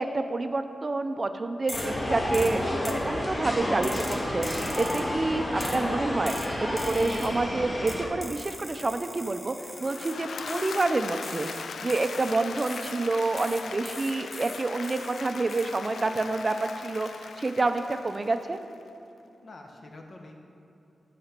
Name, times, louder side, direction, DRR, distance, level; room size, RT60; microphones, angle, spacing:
voice 1, 0.0-6.3 6.6-9.5 9.8-11.5 11.8-17.1 17.4-18.6, right 2 dB, 35° right, 8 dB, 0.5 m, -28 dB
sound 1, 1.7-8.1, left 1 dB, 35° left, 1.3 m, -30 dB
sound 2, 1.7-2.0 2.3-3.1 3.8-5.1 5.6-5.9 6.3-7.4 7.9-10.2 10.5-10.9 11.2-13.0 13.4-15.2 15.5-15.8, left 1 dB, 15° left, 0.7 m, -41 dB
voice 2, 5.2-5.9 19.4-20.3, left 2 dB, 55° left, 2 dB, 1.1 m, -46 dB
Applause / Crowd, 9.7-18.8, left 5 dB, 80° left, 0.4 m, -39 dB
8.7 x 5.1 x 6.7 m, 2.7 s
wide cardioid pair, 100°, 0 cm